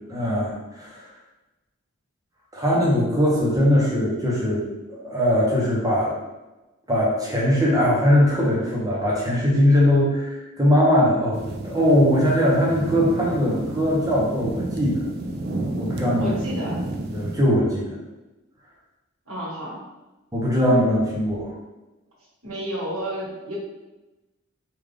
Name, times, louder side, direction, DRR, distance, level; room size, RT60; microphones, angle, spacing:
voice 1, 0.1-1.0 2.5-4.6 4.9-6.2 6.9-15.0 15.8-16.3 17.1-17.9 20.3-21.5, equal, 15° right, -5 dB, 0.7 m, -20 dB
sound 1, 11.3-17.4, right 1 dB, 45° right, 0.4 m, -31 dB
voice 2, 16.2-16.8 19.3-19.8 22.4-23.6, equal, 85° right, -5 dB, 1.4 m, -31 dB
3.7 x 2.4 x 3.3 m, 1.1 s
head